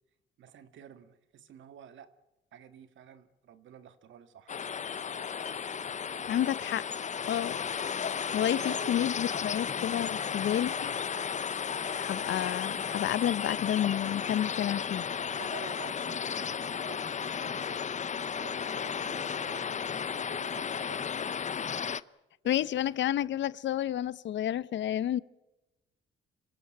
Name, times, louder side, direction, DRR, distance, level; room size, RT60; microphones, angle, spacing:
voice 1, 0.4-2.1 2.5-4.5 6.0-6.5 8.4-9.0 10.6-10.7 15.2-17.8 18.4-21.5 22.4-22.7, right 8 dB, 75° right, 1.9 m, -50 dB
sound 1, 4.5-22.0, left 7 dB, 35° left, 0.7 m, -34 dB
voice 2, 6.3-6.8 7.3-7.6 8.3-10.9 11.9-15.1 22.4-25.2, left 11 dB, 65° left, 0.8 m, -30 dB
26.0 x 16.5 x 9.0 m
cardioid pair, 90°, 20 cm